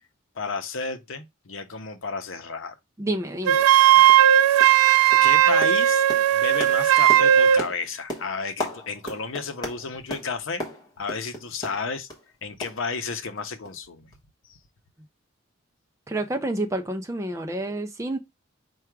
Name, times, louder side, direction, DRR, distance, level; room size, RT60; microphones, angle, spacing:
voice 1, 0.4-2.7 5.2-6.0 6.3-10.6 11.0-12.1 12.4-14.1 14.5-14.6, left 4 dB, 70° left, 0.7 m, -32 dB
voice 2, 3.0-3.6 16.1-18.2, right 1 dB, 15° right, 0.4 m, -29 dB
sound 1, 3.1-3.2 3.6-3.8 4.1-4.3 4.6-4.9 5.1-12.3 12.6-13.4 13.6-13.8 14.1-14.2, left 1 dB, 20° left, 1.1 m, -37 dB
Wind instrument woodwind instrument, 3.5-7.7, right 11 dB, 85° right, 0.3 m, -17 dB
4.7 x 2.3 x 4.5 m
head